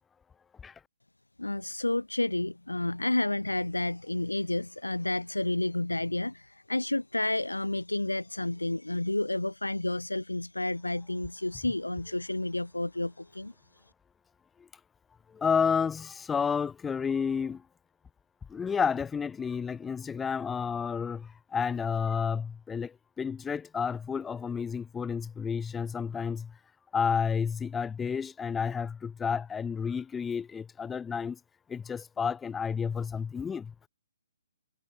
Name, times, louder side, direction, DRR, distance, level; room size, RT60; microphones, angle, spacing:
voice 1, 1.4-13.5, left 2 dB, 80° left, 1.8 m, -30 dB
voice 2, 15.3-17.6 18.5-26.5 26.9-31.4 31.7-33.7, left 6 dB, 10° left, 0.6 m, -31 dB
figure-of-eight pair, 130°, 0 cm